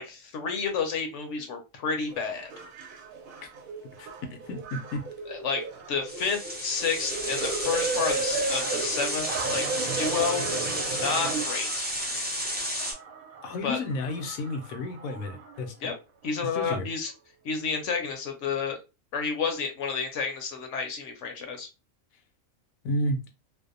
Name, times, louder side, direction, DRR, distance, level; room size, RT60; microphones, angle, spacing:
voice 1, 0.0-2.5 5.3-5.6 5.9-9.6 10.0-10.5 11.0-11.9 13.6-13.8 15.8-15.9 16.2-17.1 17.4-18.8 19.1-21.7, left 5 dB, 65° left, 0.9 m, -30 dB
sound 1, 2.1-12.0 12.6-15.6 16.2-16.3, right 4 dB, 85° right, 1.0 m, -35 dB
voice 2, 4.0-5.0 13.4-15.9 16.4-16.9 22.8-23.2, left 1 dB, 85° left, 1.0 m, -32 dB
sound 2, 6.1-12.9, equal, 15° right, 0.4 m, -32 dB
2.7 x 2.0 x 2.5 m
omnidirectional pair, 1.4 m